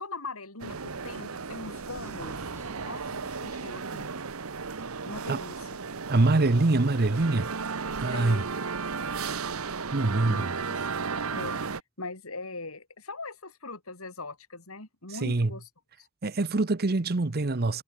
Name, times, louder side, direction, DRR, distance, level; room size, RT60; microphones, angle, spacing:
voice 1, 0.0-4.1 5.0-5.7 8.1-8.5 10.2-11.0 11.3-11.6 12.0-15.7 16.0-16.1, left 3 dB, 85° left, 6.4 m, -41 dB
sound 1, 0.6-11.8, right 5 dB, 85° right, 1.2 m, -34 dB
sound 2, 1.7-5.4, right 1 dB, 15° right, 6.5 m, -55 dB
voice 2, 6.1-7.5 8.0-8.4 9.9-10.6 15.2-15.5 16.2-17.8, right 2 dB, 45° right, 0.9 m, -24 dB
head